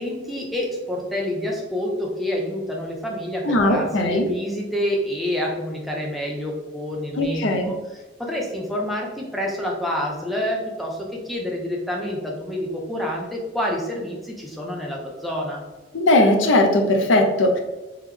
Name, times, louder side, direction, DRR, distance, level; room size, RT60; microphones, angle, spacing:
voice 1, 0.0-7.7 8.2-15.6, left 1 dB, ahead, -2 dB, 0.6 m, -27 dB
voice 2, 3.4-4.3 7.2-7.7 15.9-17.6, left 1 dB, 80° left, 4 dB, 0.6 m, -19 dB
3.6 x 3.1 x 3.3 m, 1.1 s
head